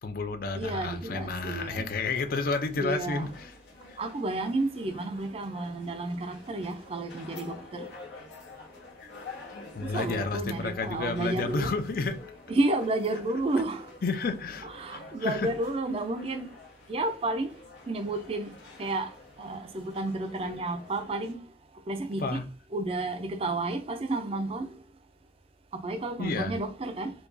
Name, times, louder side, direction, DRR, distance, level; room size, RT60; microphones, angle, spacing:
voice 1, 0.0-3.5 9.7-12.2 14.0-15.5 20.4-20.6 22.2-22.4 26.2-26.5, left 3 dB, 55° left, 0.4 m, -31 dB
voice 2, 0.5-1.9 2.8-3.3 4.0-7.9 9.9-11.7 12.5-13.9 14.6-16.5 16.9-17.5 17.9-18.5 18.8-19.1 19.4-21.4 21.9-22.4 22.7-24.7 25.7-27.1, right 2 dB, 35° right, 0.4 m, -31 dB
sound 1, 1.8-21.3, left 3 dB, 85° left, 1.2 m, -49 dB
4.5 x 2.3 x 2.6 m
head